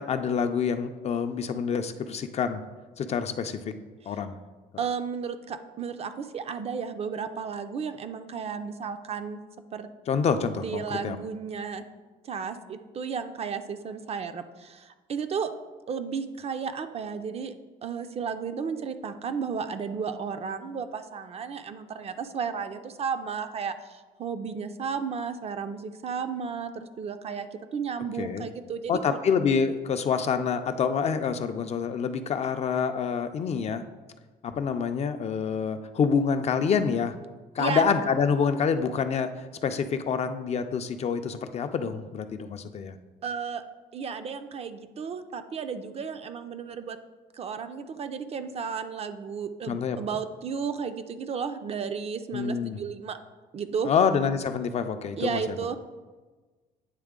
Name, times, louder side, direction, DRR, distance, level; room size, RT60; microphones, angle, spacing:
voice 1, 0.0-2.6 3.0-3.8 4.1-4.3 10.1-11.2 28.2-28.5 28.9-33.8 34.4-37.2 37.5-43.0 49.7-50.0 52.3-52.8 53.8-55.4, left 6 dB, 40° left, 8 dB, 0.4 m, -27 dB
voice 2, 4.8-9.4 9.7-9.9 10.6-11.8 12.2-15.5 15.9-17.5 17.8-29.2 37.6-37.9 43.2-43.6 43.9-47.0 47.3-53.2 53.5-53.9 55.2-55.8, right 6 dB, 35° right, 9 dB, 0.4 m, -33 dB
8.9 x 3.2 x 3.6 m, 1.3 s
cardioid pair, 110°, 17 cm